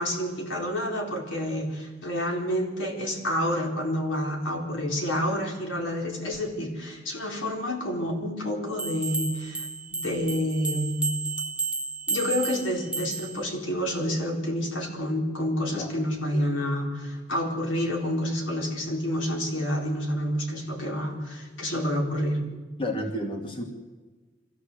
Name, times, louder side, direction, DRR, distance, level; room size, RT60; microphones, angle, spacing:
voice 1, 0.0-11.1 12.1-22.4, equal, 85° left, 1 dB, 4.3 m, -29 dB
sound 1, 8.8-13.4, right 4 dB, 5° right, 0.9 m, -32 dB
voice 2, 22.8-23.6, left 1 dB, 30° left, 2 dB, 2.5 m, -31 dB
24.5 x 15.5 x 8.0 m, 1.3 s
head